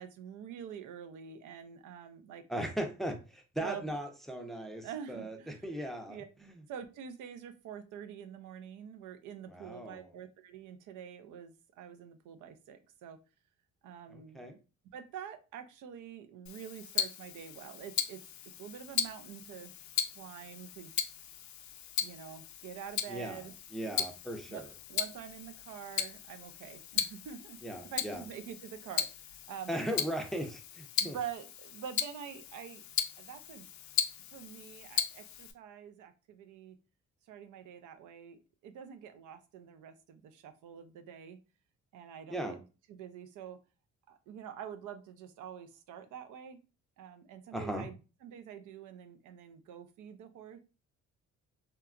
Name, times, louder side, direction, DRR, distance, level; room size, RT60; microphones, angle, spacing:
voice 1, 0.0-2.4 3.6-3.8 4.8-5.7 6.1-6.3 6.7-13.2 13.8-14.4 14.9-18.2 18.6-19.7 20.2-20.9 22.0-23.5 24.0-24.1 24.5-24.6 24.9-30.0 31.0-32.8 33.2-33.7 34.3-36.8 37.3-41.4 41.9-43.6 44.1-46.6 47.0-50.6, right 8 dB, 80° right, 8 dB, 0.5 m, -46 dB
voice 2, 2.5-5.4 5.6-6.5 9.5-10.1 14.1-14.6 23.1-23.4 23.7-24.6 27.6-28.2 29.7-31.2 42.3-42.6 47.5-47.9, right 1 dB, ahead, 4 dB, 0.5 m, -38 dB
Tick-tock, 16.5-35.5, left 9 dB, 65° left, 0.4 m, -38 dB
2.9 x 2.2 x 2.3 m, 0.32 s
cardioid pair, 90°, 30 cm